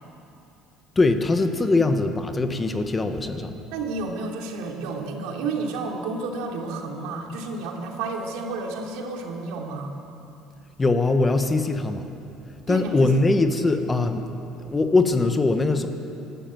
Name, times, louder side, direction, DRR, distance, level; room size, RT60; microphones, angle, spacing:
voice 1, 1.0-3.6 10.8-12.1 12.7-14.2 14.6-15.9, left 3 dB, 15° left, 7 dB, 0.9 m, -21 dB
voice 2, 3.7-9.9 12.7-13.2, right 3 dB, 85° right, 1 dB, 3.2 m, -31 dB
25.0 x 12.5 x 9.0 m, 2.8 s
cardioid pair, 170°, 0 cm